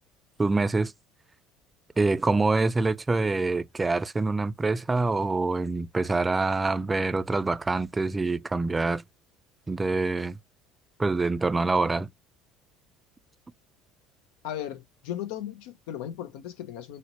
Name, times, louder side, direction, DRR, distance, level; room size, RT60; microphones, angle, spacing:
voice 1, 0.4-0.9 2.0-9.0 9.7-10.4 11.0-12.1, right 3 dB, 20° right, 0.3 m, -25 dB
voice 2, 14.4-17.0, left 11 dB, 85° left, 0.7 m, -36 dB
4.0 x 2.1 x 2.9 m
supercardioid pair, 100°, 0 cm